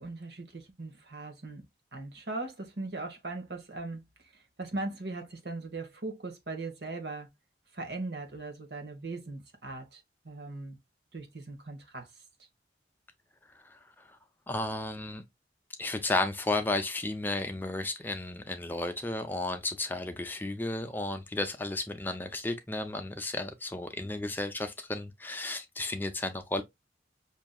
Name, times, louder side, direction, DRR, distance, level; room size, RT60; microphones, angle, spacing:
voice 1, 0.0-1.6 1.9-4.0 4.3-7.3 7.7-10.8 11.1-12.1, right 2 dB, 70° right, 1.2 m, -39 dB
voice 2, 13.5-14.2 14.5-15.2 15.8-26.6, left 2 dB, 10° left, 0.5 m, -33 dB
5.9 x 2.7 x 2.3 m
head